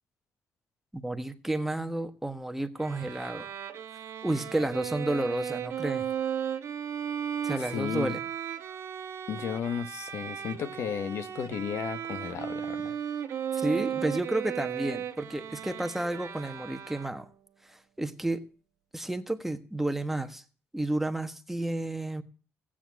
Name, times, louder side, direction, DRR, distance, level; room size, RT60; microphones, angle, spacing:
voice 1, 0.9-3.5 4.2-6.1 7.4-8.2 13.5-17.3 17.7-18.5 18.9-20.4 20.7-22.2, right 1 dB, 5° right, 1.3 m, -31 dB
Bowed string instrument, 2.8-17.4, right 9 dB, 60° right, 1.2 m, -36 dB
voice 2, 7.6-8.2 9.3-13.0, left 8 dB, 65° left, 1.2 m, -34 dB
15.5 x 8.8 x 6.2 m
cardioid pair, 115°, 5 cm